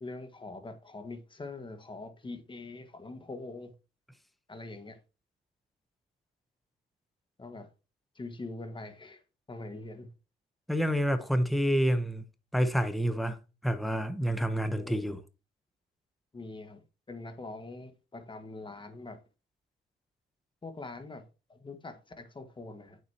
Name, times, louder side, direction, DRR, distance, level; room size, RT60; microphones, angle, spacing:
voice 1, 0.0-3.7 4.5-5.0 7.4-7.7 8.1-9.2 9.5-10.1 14.7-15.1 16.3-19.2 20.6-23.0, left 2 dB, 25° left, 1.6 m, -43 dB
voice 2, 10.7-12.2 12.5-13.4 13.6-15.2, equal, ahead, 0.9 m, -28 dB
8.9 x 7.3 x 2.9 m
cardioid pair, 90°, 20 cm